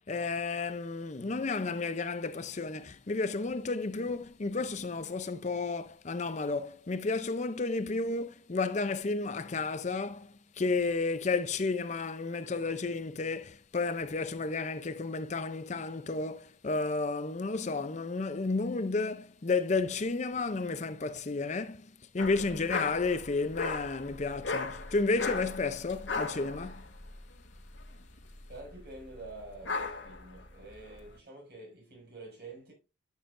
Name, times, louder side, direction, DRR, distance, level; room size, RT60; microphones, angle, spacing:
voice 1, 0.1-26.9, left 3 dB, 40° left, 0.6 m, -32 dB
sound 1, 22.2-31.1, left 4 dB, 75° left, 1.5 m, -37 dB
voice 2, 28.5-32.7, right 2 dB, 55° right, 6.0 m, -47 dB
12.5 x 7.3 x 2.6 m
head